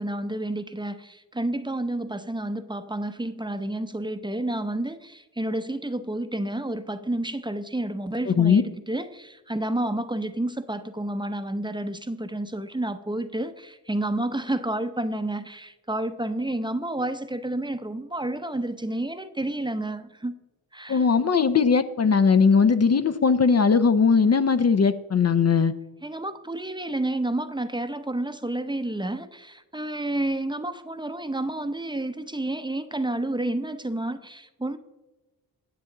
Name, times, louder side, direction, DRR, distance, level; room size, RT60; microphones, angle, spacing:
voice 1, 0.0-20.3 20.7-21.1 26.0-34.8, right 1 dB, 10° right, 10 dB, 0.7 m, -30 dB
voice 2, 8.3-8.6 20.9-25.7, left 5 dB, 35° left, 12 dB, 0.6 m, -19 dB
9.6 x 7.3 x 3.9 m, 1.1 s
cardioid pair, 55°, 45 cm